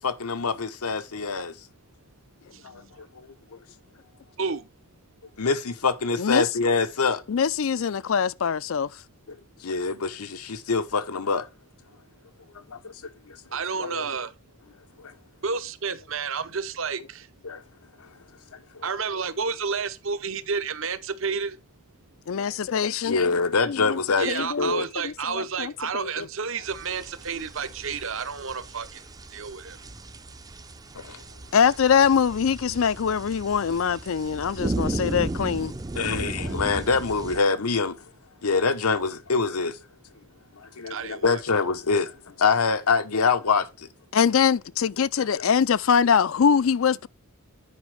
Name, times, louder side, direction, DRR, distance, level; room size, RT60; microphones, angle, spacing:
voice 1, 0.0-1.5 2.6-3.3 5.4-7.2 9.3-11.5 12.7-12.9 13.3-13.4 13.8-14.0 15.0-15.1 17.4-17.6 18.0-18.1 18.5-18.9 23.0-24.3 24.6-24.8 30.9-31.2 35.9-38.0 38.4-39.8 40.6-43.9, left 4 dB, 85° left, 1.0 m, -25 dB
voice 2, 7.3-8.9 22.3-23.4 23.7-24.0 24.3-26.3 31.5-35.7 44.1-47.1, left 7 dB, 65° left, 0.4 m, -23 dB
voice 3, 13.5-14.3 15.4-17.2 18.8-21.6 24.2-28.9 29.3-29.8 40.9-41.4, right 5 dB, 60° right, 0.8 m, -30 dB
sound 1, 26.6-37.4, right 2 dB, 15° right, 0.5 m, -35 dB
9.5 x 5.2 x 4.8 m
head